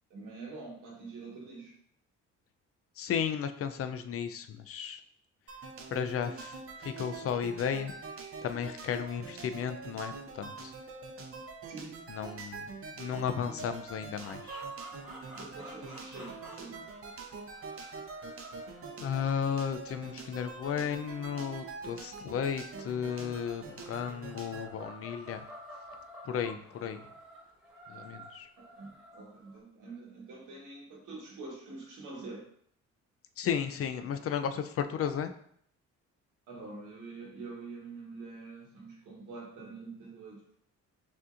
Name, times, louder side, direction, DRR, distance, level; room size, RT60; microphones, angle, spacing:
voice 1, 0.1-1.7 11.6-12.0 15.3-16.8 28.6-32.5 36.5-40.6, right 3 dB, 85° right, -2 dB, 1.5 m, -46 dB
voice 2, 3.0-5.0 5.9-6.5 6.8-7.9 8.4-10.7 12.1-12.7 13.0-14.6 19.0-25.4 26.3-27.0 27.9-28.5 33.4-35.3, left 7 dB, 50° left, 8 dB, 0.5 m, -34 dB
sound 1, 5.5-24.7, right 4 dB, 45° right, 0.7 m, -44 dB
sound 2, 14.1-21.9 22.6-29.6, equal, ahead, 1.5 m, -51 dB
6.2 x 2.8 x 2.5 m, 0.65 s
cardioid pair, 90°, 30 cm